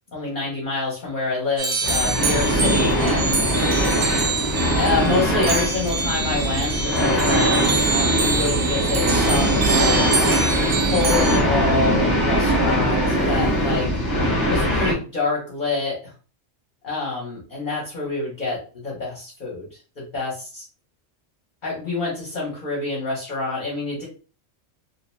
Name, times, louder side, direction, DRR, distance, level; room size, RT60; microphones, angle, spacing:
voice 1, 0.1-3.4 4.8-10.0 10.8-13.9 14.5-16.1 16.8-19.7 20.0-20.6 21.6-24.0, left 3 dB, 45° left, -3 dB, 0.9 m, -27 dB
sound 1, 1.6-11.4, right 4 dB, 65° right, 0.9 m, -25 dB
sound 2, 1.8-14.9, equal, 15° left, 0.8 m, -21 dB
2.5 x 2.1 x 3.0 m, 0.36 s
omnidirectional pair, 1.3 m